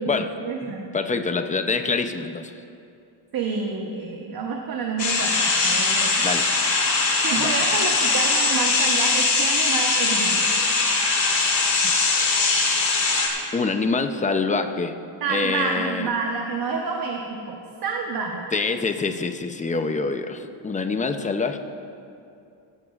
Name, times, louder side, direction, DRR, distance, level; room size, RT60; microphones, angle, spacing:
voice 1, 0.0-0.9 3.3-5.4 5.6-6.2 7.2-10.6 15.2-18.4, right 4 dB, 50° right, 1 dB, 1.0 m, -28 dB
voice 2, 0.6-2.5 6.2-6.5 7.4-7.5 13.5-14.9 15.3-16.1 18.5-21.6, left 4 dB, 15° left, 7 dB, 0.5 m, -25 dB
sound 1, 5.0-13.3, left 3 dB, 70° left, 2.4 m, -21 dB
17.0 x 15.0 x 2.4 m, 2.6 s
wide cardioid pair, 155°, 46 cm